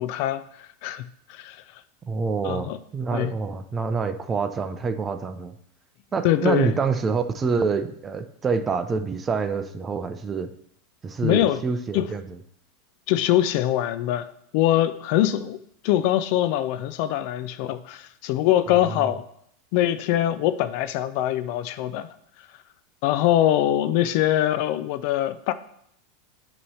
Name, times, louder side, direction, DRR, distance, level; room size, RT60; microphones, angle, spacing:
voice 1, 0.0-1.6 2.4-2.8 3.1-3.3 6.2-6.7 11.2-11.6 11.9-12.1 13.1-14.3 14.5-15.6 15.8-19.2 19.7-22.1 23.0-25.5, left 13 dB, 60° left, 0.4 m, -23 dB
voice 2, 2.1-5.5 6.1-10.5 11.0-12.2 18.8-19.1, right 5 dB, 25° right, 0.6 m, -26 dB
8.4 x 3.1 x 5.5 m
hypercardioid pair, 110°, 0 cm